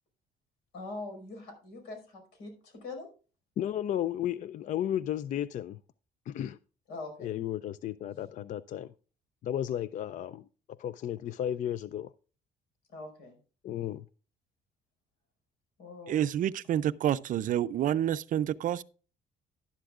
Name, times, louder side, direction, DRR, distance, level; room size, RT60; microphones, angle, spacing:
voice 1, 0.7-3.1 6.9-7.3 12.9-13.4 15.8-16.3, left 3 dB, 85° left, 5.2 m, -43 dB
voice 2, 3.6-5.8 6.3-6.6 7.2-8.9 9.4-10.4 10.8-12.1 13.6-14.1, left 11 dB, 50° left, 0.4 m, -33 dB
voice 3, 16.1-18.8, right 11 dB, 50° right, 0.5 m, -28 dB
11.5 x 11.5 x 2.4 m
cardioid pair, 110°, 17 cm